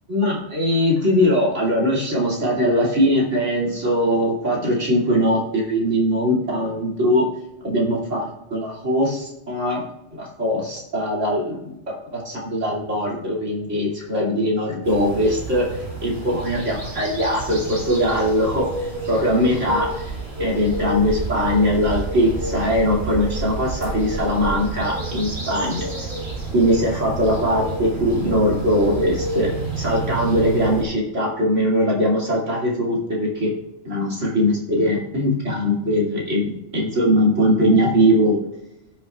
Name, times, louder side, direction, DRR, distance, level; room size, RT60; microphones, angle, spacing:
voice 1, 0.1-7.3 7.6-9.8 10.1-11.8 12.1-18.6 19.1-19.9 20.4-25.8 26.5-33.5 33.8-38.4, equal, 85° right, -4 dB, 2.9 m, -21 dB
sound 1, 14.8-30.8, right 2 dB, 55° right, 3.6 m, -29 dB
18.0 x 7.1 x 2.4 m, 0.90 s
omnidirectional pair, 1.2 m